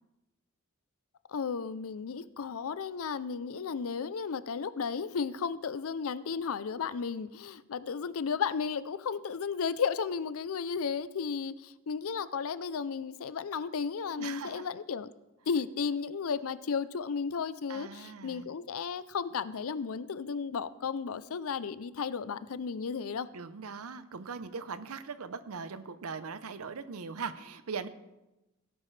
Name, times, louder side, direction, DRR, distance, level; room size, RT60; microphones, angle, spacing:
voice 1, 1.3-15.1 15.5-23.3, left 6 dB, 65° left, 15 dB, 0.5 m, -34 dB
voice 2, 14.2-14.7 17.7-18.5 23.3-27.9, right 5 dB, 75° right, 13 dB, 0.7 m, -40 dB
17.0 x 8.8 x 3.3 m, 1.0 s
head